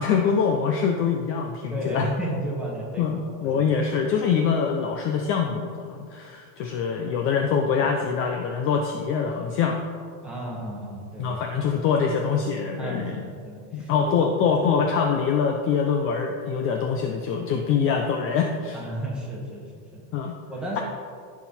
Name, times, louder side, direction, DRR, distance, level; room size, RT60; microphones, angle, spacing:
voice 1, 0.0-2.1 3.0-9.8 11.2-13.2 13.7-18.8 20.1-20.4 20.8-20.9, left 6 dB, 30° left, 3 dB, 0.6 m, -24 dB
voice 2, 1.7-3.7 6.9-7.0 10.2-11.4 12.8-14.3 18.7-20.1 20.5-20.8, right 1 dB, ahead, -5 dB, 1.8 m, -33 dB
14.0 x 6.0 x 4.3 m, 2.1 s
supercardioid pair, 165°, 40 cm